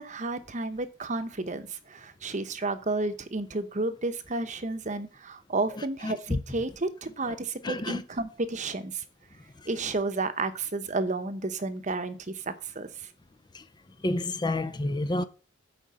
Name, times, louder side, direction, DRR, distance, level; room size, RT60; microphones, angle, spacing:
voice 1, 0.0-9.0 9.7-13.1, right 2 dB, 35° right, 0.9 m, -32 dB
voice 2, 5.7-6.4 7.6-8.0 13.5-13.6 14.0-15.2, left 2 dB, 20° left, 0.5 m, -29 dB
8.5 x 5.2 x 7.5 m
head